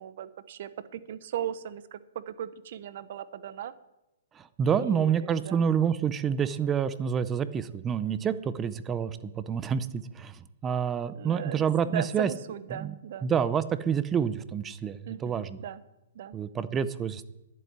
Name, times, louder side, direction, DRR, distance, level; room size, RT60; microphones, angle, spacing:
voice 1, 0.0-3.7 4.7-5.7 11.1-13.3 15.1-15.8 16.1-16.4, right 10 dB, 45° right, 14 dB, 0.8 m, -38 dB
voice 2, 4.4-12.3 12.8-12.9 13.2-15.6 16.3-17.3, right 7 dB, 15° right, 15 dB, 0.5 m, -28 dB
11.0 x 7.8 x 9.5 m, 0.95 s
hypercardioid pair, 165°, 0 cm